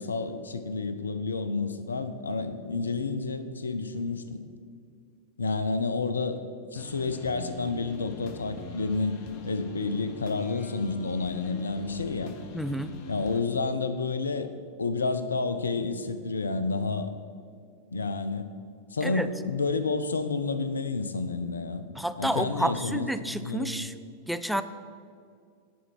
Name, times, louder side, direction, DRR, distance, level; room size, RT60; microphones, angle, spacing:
voice 1, 0.0-4.4 5.4-6.4 6.7-12.3 13.1-14.5 14.8-17.1 17.9-18.5 18.9-21.8 22.2-23.9, left 4 dB, 75° left, 11 dB, 0.5 m, -30 dB
sound 1, 6.7-13.4, left 4 dB, 45° left, 0.8 m, -44 dB
voice 2, 12.5-12.9 19.0-19.3 22.0-23.9 24.3-24.6, right 1 dB, ahead, 10 dB, 0.4 m, -30 dB
10.0 x 5.4 x 5.9 m, 2.2 s
figure-of-eight pair, 90°, 0 cm